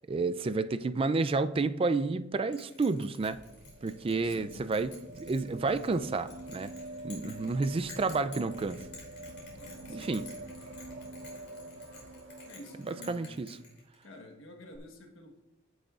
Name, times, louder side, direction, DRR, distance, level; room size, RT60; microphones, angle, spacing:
voice 1, 0.1-3.4 3.8-6.7 7.0-8.8 9.9-10.3 12.9-13.6, right 3 dB, 25° right, 12 dB, 0.3 m, -30 dB
Bell, 2.5-14.2, left 4 dB, 55° left, 3.1 m, -52 dB
sound 1, 2.6-13.5 14.7-14.8, right 1 dB, 70° right, 1.4 m, -47 dB
voice 2, 4.2-4.7 7.2-7.6 9.6-10.4 12.5-13.5 14.0-15.4, left 1 dB, 75° left, 2 dB, 1.3 m, -50 dB
14.5 x 6.3 x 2.4 m, 0.95 s
head